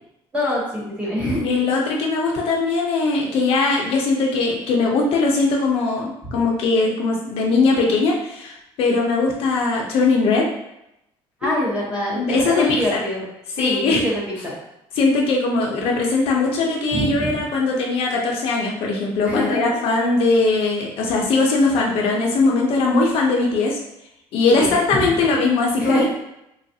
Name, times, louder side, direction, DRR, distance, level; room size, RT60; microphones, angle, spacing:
voice 1, 0.3-1.5 6.2-6.3 11.4-13.2 13.6-14.5 16.9-17.3 19.2-19.8 24.5-25.1 25.8-26.0, left 1 dB, 10° right, -5 dB, 0.9 m, -24 dB
voice 2, 1.4-10.4 11.4-11.5 12.1-13.0 13.6-14.0 15.0-23.8 24.3-26.0, left 3 dB, 65° left, -1 dB, 0.6 m, -20 dB
3.2 x 2.3 x 2.7 m, 0.83 s
cardioid pair, 160°, 11 cm